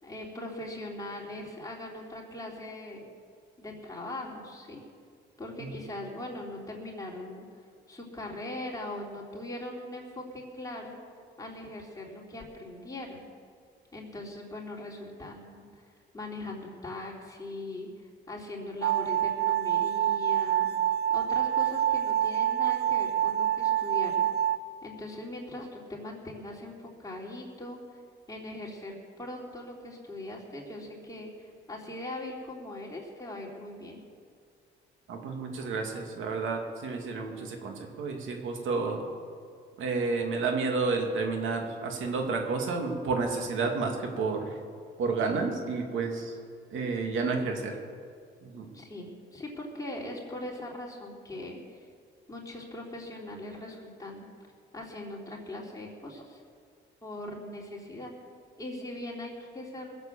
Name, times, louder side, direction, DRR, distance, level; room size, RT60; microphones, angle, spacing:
voice 1, 0.0-3.1 3.6-4.8 5.4-7.5 7.9-11.0 11.4-13.2 13.9-15.7 16.1-20.7 21.1-24.3 24.8-28.0 28.3-34.0 48.7-51.8 52.3-54.3 54.7-56.4 57.0-58.1 58.6-60.0, left 1 dB, 15° left, -2 dB, 3.9 m, -40 dB
sound 1, 18.8-24.6, right 11 dB, 55° right, 0.6 m, -26 dB
voice 2, 35.1-39.0 39.8-44.5 45.0-46.3 46.7-47.7 48.4-48.7, right 4 dB, 80° right, 3 dB, 2.4 m, -30 dB
21.0 x 8.0 x 7.2 m, 2.2 s
cardioid pair, 90°, 20 cm